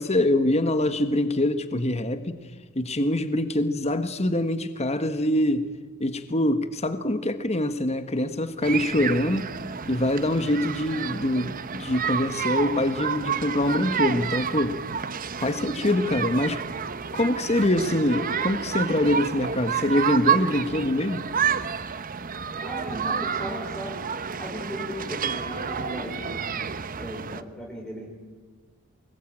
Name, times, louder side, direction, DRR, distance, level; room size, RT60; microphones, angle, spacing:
voice 1, 0.0-2.4 2.7-5.7 6.0-9.5 9.9-14.8 15.4-16.6 17.1-21.3, left 1 dB, 30° left, 10 dB, 1.5 m, -24 dB
sound 1, 8.6-27.4, right 6 dB, 40° right, 0.9 m, -30 dB
voice 2, 22.6-24.1 24.3-26.4 27.0-28.1, equal, 5° left, -1 dB, 4.3 m, -36 dB
24.5 x 21.5 x 8.9 m, 1.4 s
head